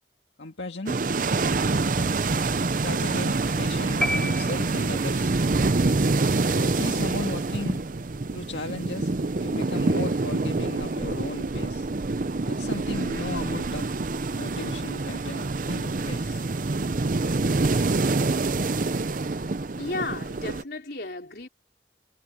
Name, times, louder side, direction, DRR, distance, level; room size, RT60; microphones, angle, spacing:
voice 1, 0.4-1.0 2.8-5.3 6.5-7.8 8.3-9.1 9.4-11.9 12.5-14.0 14.3-16.4, left 2 dB, 80° left, 1.9 m, -36 dB
sound 1, 0.9-20.6, right 3 dB, 45° right, 0.6 m, -26 dB
sound 2, 4.0-5.2, left 1 dB, 5° left, 2.4 m, -30 dB
voice 2, 19.8-21.5, left 2 dB, 55° left, 4.5 m, -33 dB
head